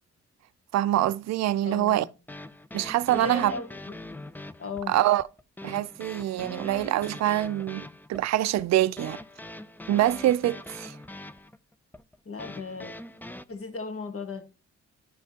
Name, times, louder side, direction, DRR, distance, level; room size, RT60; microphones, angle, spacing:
voice 1, 0.7-2.0 2.7-3.5 4.9-5.2 5.6-9.2 9.9-11.0, right 14 dB, 65° right, 0.4 m, -25 dB
voice 2, 1.6-2.1 3.1-3.7 4.6-5.0 12.2-12.9 13.5-14.4, left 4 dB, 50° left, 1.5 m, -36 dB
sound 1, 1.9-13.4, left 1 dB, 5° left, 0.5 m, -42 dB
9.9 x 5.3 x 2.8 m
cardioid pair, 60°, 29 cm